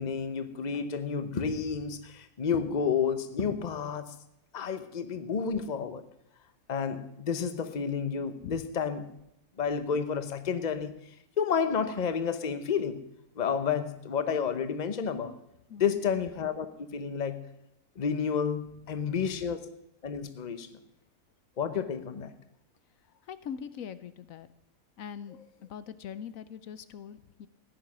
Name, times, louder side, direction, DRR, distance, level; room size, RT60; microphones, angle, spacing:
voice 1, 0.0-4.1 4.5-6.0 6.7-9.1 9.6-13.0 13.4-15.4 15.8-17.5 18.0-19.6 20.0-20.7 21.6-22.3, left 6 dB, 35° left, 11 dB, 0.9 m, -30 dB
voice 2, 23.2-24.5 25.0-27.5, left 8 dB, 75° left, 14 dB, 1.1 m, -42 dB
15.0 x 10.5 x 6.1 m, 0.83 s
omnidirectional pair, 1.5 m